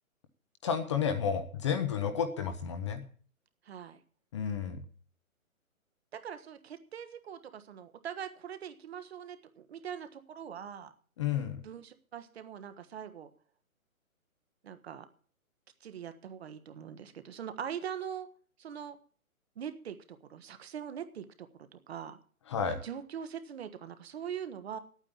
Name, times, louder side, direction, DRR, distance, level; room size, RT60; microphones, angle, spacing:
voice 1, 0.6-3.0 4.3-4.8 11.2-11.6 22.5-22.8, left 7 dB, 20° left, 9 dB, 0.8 m, -31 dB
voice 2, 3.6-4.0 6.1-10.9 11.6-13.3 14.6-15.0 15.8-18.3 18.6-19.0 19.5-22.2 22.8-24.8, right 8 dB, 45° right, 10 dB, 1.4 m, -42 dB
9.7 x 9.0 x 8.7 m, 0.43 s
hypercardioid pair, 155°, 42 cm